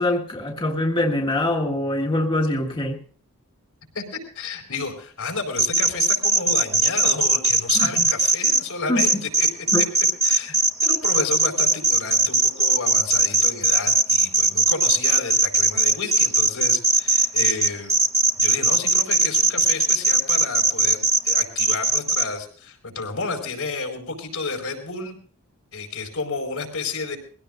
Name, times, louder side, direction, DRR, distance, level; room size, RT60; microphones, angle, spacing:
voice 1, 0.0-3.0 7.7-8.1 8.9-9.2 9.7-9.8, left 1 dB, 25° left, 1.7 m, -24 dB
voice 2, 3.9-9.5 9.8-9.9 10.2-10.6 10.8-17.9 18.4-25.2 25.7-27.2, left 4 dB, 80° left, 4.6 m, -31 dB
sound 1, 5.6-8.6 9.0-22.2, right 3 dB, 15° right, 1.2 m, -19 dB
22.0 x 16.5 x 2.5 m
head